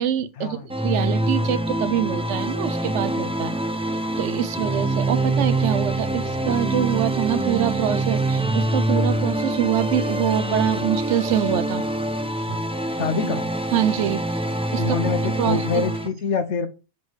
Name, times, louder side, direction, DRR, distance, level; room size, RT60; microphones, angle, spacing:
voice 1, 0.0-11.8 12.5-12.6 13.7-14.4 14.7-15.9, right 10 dB, 75° right, 0.9 m, -25 dB
sound 1, 0.7-16.1, right 1 dB, 10° right, 0.3 m, -25 dB
voice 2, 13.0-13.5 14.8-16.7, left 5 dB, 70° left, 1.1 m, -25 dB
6.2 x 4.3 x 4.7 m
omnidirectional pair, 1.3 m